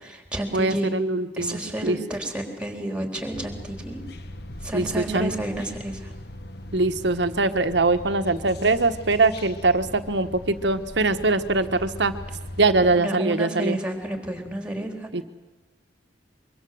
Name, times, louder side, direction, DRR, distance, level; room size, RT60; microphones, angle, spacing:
voice 1, 0.0-0.9 1.4-4.0 4.6-6.1 12.8-15.1, right 1 dB, 5° right, 4 dB, 3.9 m, -30 dB
voice 2, 0.5-2.0 4.7-5.3 6.7-12.1 12.6-13.8 15.1-15.2, right 3 dB, 75° right, 9 dB, 1.4 m, -22 dB
sound 1, 3.3-13.0, left 1 dB, 65° left, 1.6 m, -39 dB
24.5 x 24.0 x 7.9 m, 1.1 s
head